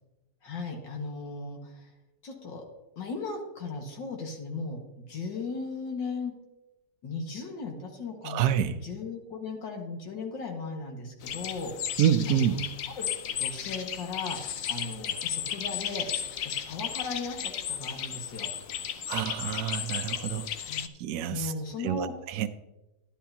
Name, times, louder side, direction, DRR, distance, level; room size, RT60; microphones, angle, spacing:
voice 1, 0.4-1.9 2.2-2.6 3.0-6.3 7.0-8.4 8.8-12.0 12.3-13.1 13.4-14.4 14.7-16.1 16.4-18.5 20.7-20.9 21.3-22.1, left 4 dB, 85° left, 1 dB, 2.4 m, -37 dB
voice 2, 8.2-8.8 12.0-12.5 19.1-20.5 21.0-21.5 21.8-22.5, right 10 dB, 70° right, 7 dB, 0.9 m, -27 dB
sound 1, 11.2-20.9, left 9 dB, 65° left, 0.8 m, -34 dB
11.5 x 11.0 x 2.8 m, 0.99 s
omnidirectional pair, 1.9 m